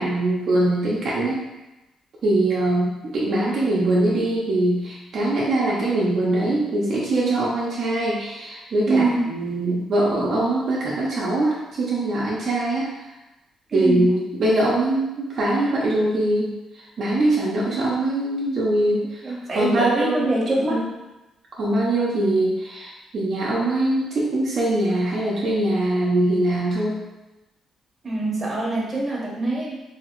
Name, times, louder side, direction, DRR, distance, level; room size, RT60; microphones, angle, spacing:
voice 1, 0.0-1.4 2.2-12.9 13.7-16.5 17.0-19.2 19.5-20.3 20.7-20.8 21.6-27.0, right 1 dB, 55° right, -6 dB, 0.6 m, -22 dB
voice 2, 8.9-9.3 13.7-14.1 19.2-20.8 28.0-29.8, right 2 dB, 25° right, -5 dB, 1.1 m, -24 dB
2.8 x 2.8 x 2.9 m, 1.0 s
cardioid pair, 90°, 0 cm